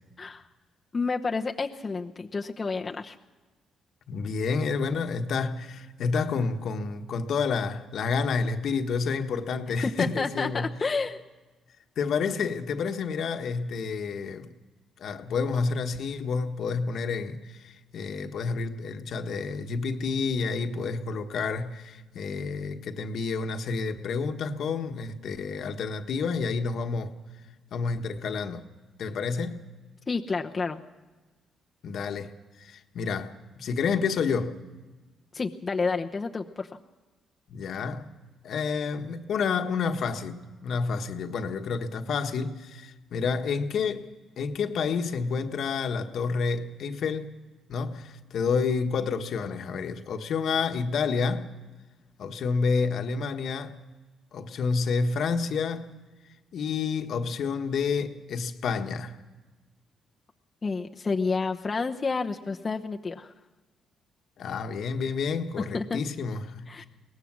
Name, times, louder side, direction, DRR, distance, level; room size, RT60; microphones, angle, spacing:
voice 1, 0.9-3.2 9.8-11.2 30.1-30.8 35.3-36.7 60.6-63.3 65.6-66.0 66.7-66.8, left 4 dB, 30° left, 0.9 m, -30 dB
voice 2, 4.1-10.7 12.0-14.5 15.0-27.1 27.7-28.6 29.0-29.6 31.8-32.3 32.6-34.5 37.5-38.1 38.4-44.0 44.4-47.3 47.7-51.5 52.2-53.8 54.3-55.9 56.5-59.2 64.4-66.9, left 5 dB, 65° left, 1.4 m, -29 dB
22.5 x 18.5 x 6.2 m
cardioid pair, 90°, 0 cm